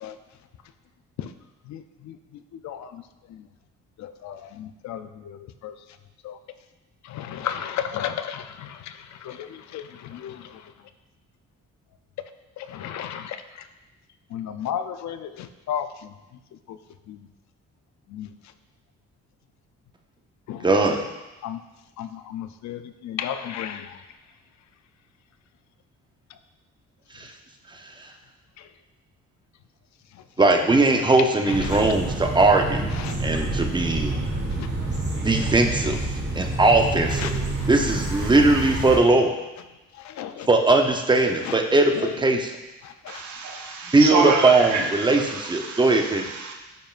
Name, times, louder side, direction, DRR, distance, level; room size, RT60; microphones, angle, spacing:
voice 1, 1.7-2.1 2.6-2.9 4.0-5.4 5.6-5.7 6.2-6.3 7.1-8.8 9.2-10.4 12.6-13.4 14.3-15.9 17.1-17.2 18.1-18.3 20.5-20.7 21.4-21.6 22.0-23.9 31.7-32.0 33.0-33.2 34.6-34.7 37.2-37.3 40.1-40.5 42.0-42.1 43.0-43.2, left 9 dB, 65° left, 10 dB, 0.5 m, -33 dB
voice 2, 20.6-21.0 27.1-27.3 30.4-32.9 33.2-34.2 35.2-36.0 36.3-37.3 37.7-39.3 40.5-42.5 43.9-46.2, right 2 dB, 15° right, 3 dB, 0.8 m, -19 dB
sound 1, 31.5-39.0, right 2 dB, 35° right, 1.5 m, -28 dB
voice 3, 43.1-45.8 46.4-46.5, right 5 dB, 75° right, 2 dB, 1.1 m, -27 dB
9.2 x 5.2 x 2.5 m, 1.1 s
cardioid pair, 90°, 30 cm